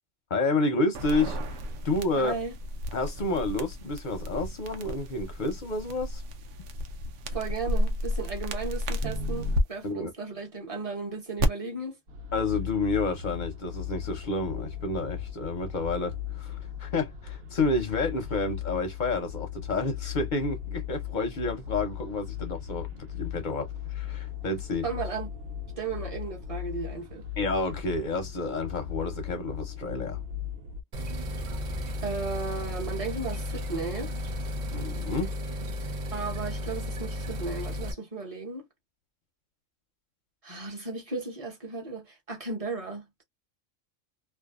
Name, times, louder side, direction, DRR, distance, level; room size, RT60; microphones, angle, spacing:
voice 1, 0.3-2.4 2.9-6.2 9.8-10.1 12.3-24.9 27.4-30.2 34.7-35.3, left 3 dB, 50° left, 0.6 m, -30 dB
sound 1, 0.9-9.6 11.4-11.5, left 1 dB, 70° right, 0.8 m, -32 dB
voice 2, 2.1-2.6 7.3-12.0 24.8-25.3 25.8-27.3 32.0-34.1 36.1-38.7 40.4-43.2, right 4 dB, 30° right, 0.8 m, -35 dB
sound 2, 12.1-30.8, left 11 dB, 90° right, 1.1 m, -38 dB
sound 3, 30.9-37.9, left 1 dB, 50° right, 0.5 m, -34 dB
2.7 x 2.2 x 2.3 m
omnidirectional pair, 1.4 m